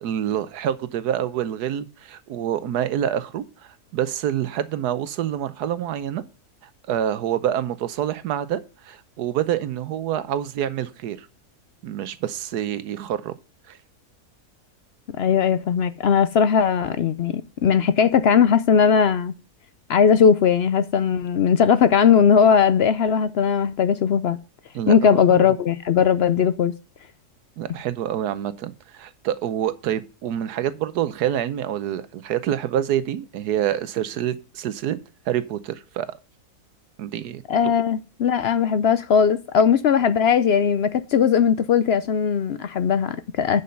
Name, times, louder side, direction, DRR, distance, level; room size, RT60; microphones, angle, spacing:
voice 1, 0.0-3.4 3.9-6.2 6.9-11.3 11.8-13.3 13.7-13.8 24.7-25.5 27.6-35.0 35.3-36.2 37.0-37.4, right 10 dB, 85° right, 1.3 m, -27 dB
voice 2, 15.2-19.3 19.9-24.4 24.9-26.7 37.5-43.6, left 7 dB, 70° left, 0.6 m, -19 dB
10.5 x 5.5 x 5.3 m
omnidirectional pair, 1.7 m